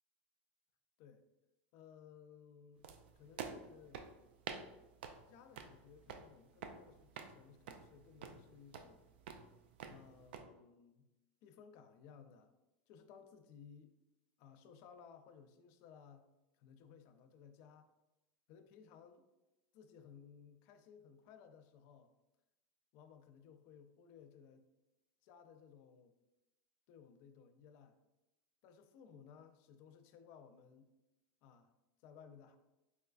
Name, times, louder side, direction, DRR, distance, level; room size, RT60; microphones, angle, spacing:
voice 1, 1.7-2.9 3.2-4.1 5.3-9.1 9.9-11.1 11.4-12.5 12.9-14.0 14.4-17.9 18.5-19.3 19.7-22.1 22.9-24.7 25.2-26.1 26.9-28.0 28.6-30.9 31.4-31.7 32.0-32.6, left 7 dB, 55° left, 7 dB, 0.3 m, -59 dB
sound 1, 2.8-10.4, right 6 dB, 80° right, 0.3 m, -50 dB
4.1 x 2.2 x 2.4 m, 0.96 s
supercardioid pair, 140°, 5 cm